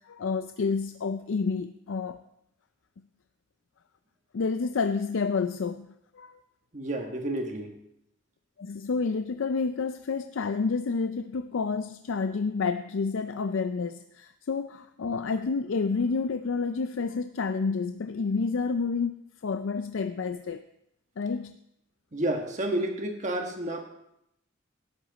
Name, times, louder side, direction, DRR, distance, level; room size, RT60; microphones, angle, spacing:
voice 1, 0.1-2.2 4.3-5.9 6.1-6.4 8.6-20.6 21.2-21.6, left 4 dB, 75° left, 10 dB, 0.4 m, -29 dB
voice 2, 6.7-7.7 22.1-23.8, right 1 dB, 35° right, 3 dB, 1.6 m, -30 dB
13.0 x 10.5 x 4.0 m, 0.79 s
head